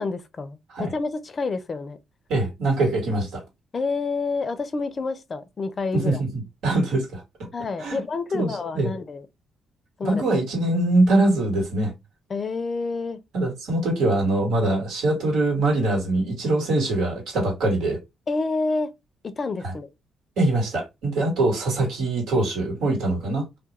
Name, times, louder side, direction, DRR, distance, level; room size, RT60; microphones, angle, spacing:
voice 1, 0.0-2.0 3.7-6.2 7.5-9.3 10.0-10.2 12.3-13.2 18.3-18.9 19.2-19.9, left 3 dB, 40° left, 0.4 m, -28 dB
voice 2, 2.3-3.4 5.9-7.2 7.8-8.0 8.3-8.9 10.0-11.9 13.3-18.0 19.6-19.7 20.4-23.5, right 2 dB, 85° right, 1.3 m, -23 dB
2.3 x 2.2 x 2.8 m
cardioid pair, 90°, 0 cm